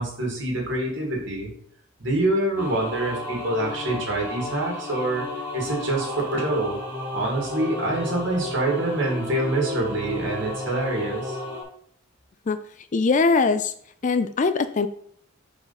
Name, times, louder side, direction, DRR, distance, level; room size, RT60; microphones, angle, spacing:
voice 1, 0.0-1.5 2.0-5.2 5.5-6.8 7.1-11.4, right 2 dB, 60° right, -1 dB, 2.4 m, -26 dB
sound 1, 2.6-11.6, left 1 dB, 10° right, 2.1 m, -33 dB
voice 2, 12.9-13.7 14.0-14.9, left 4 dB, 40° left, 11 dB, 0.4 m, -21 dB
4.9 x 4.9 x 5.8 m, 0.63 s
head